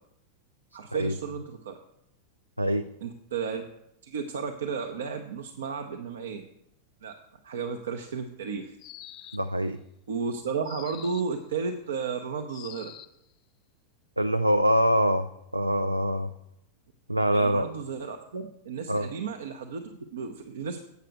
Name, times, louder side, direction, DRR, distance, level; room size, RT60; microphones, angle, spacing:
voice 1, 0.7-1.8 3.0-3.6 4.0-6.4 7.0-7.1 7.4-8.8 10.1-12.9 17.3-20.8, right 5 dB, 65° right, 4 dB, 0.7 m, -33 dB
sound 1, 8.8-9.6 10.6-11.4 12.5-13.2, left 12 dB, 35° left, 0.5 m, -46 dB
voice 2, 9.3-9.8 14.2-15.3 15.5-16.3 17.1-17.7 18.9-19.1, equal, 85° right, 9 dB, 0.3 m, -24 dB
8.1 x 6.6 x 6.4 m, 0.81 s
figure-of-eight pair, 90°, 0 cm